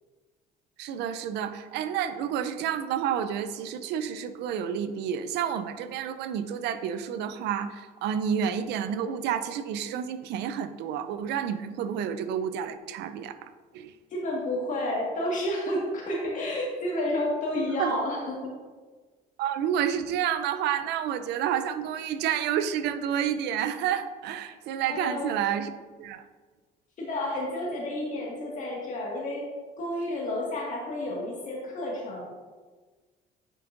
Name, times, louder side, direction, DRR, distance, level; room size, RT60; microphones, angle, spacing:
voice 1, 0.8-13.9 17.6-17.9 19.4-25.7 26.0-26.3, right 9 dB, 80° right, 11 dB, 0.5 m, -30 dB
voice 2, 14.1-18.5 24.9-25.3 27.0-29.4 29.8-32.3, left 1 dB, 50° left, -3 dB, 1.8 m, -30 dB
8.3 x 5.3 x 2.6 m, 1.4 s
cardioid pair, 110°, 17 cm